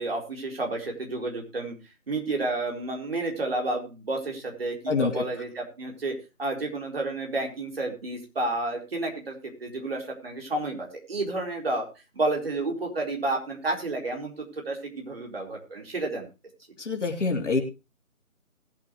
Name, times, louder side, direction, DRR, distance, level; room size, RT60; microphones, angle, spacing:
voice 1, 0.0-1.8 2.1-11.8 12.1-16.2, right 2 dB, 40° right, 1 dB, 4.2 m, -31 dB
voice 2, 4.9-5.2 16.8-17.6, left 3 dB, 55° left, 2 dB, 3.3 m, -26 dB
20.0 x 8.5 x 3.2 m, 0.30 s
figure-of-eight pair, 170°, 43 cm